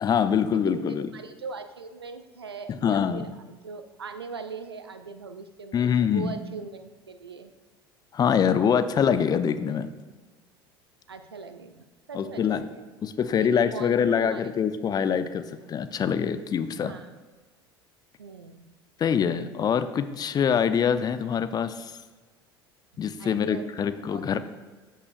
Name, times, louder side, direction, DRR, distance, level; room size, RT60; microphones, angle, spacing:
voice 1, 0.0-1.1 2.8-3.3 5.7-6.4 8.1-9.9 12.1-12.6 13.0-16.9 19.0-21.9 23.0-24.4, left 7 dB, 30° left, 11 dB, 0.6 m, -24 dB
voice 2, 0.5-7.5 8.5-8.8 9.2-9.3 11.1-12.9 13.4-14.8 16.8-17.1 18.2-18.7 23.2-24.2, right 4 dB, 85° right, 9 dB, 0.5 m, -41 dB
14.5 x 5.6 x 2.5 m, 1.4 s
figure-of-eight pair, 70°, 13 cm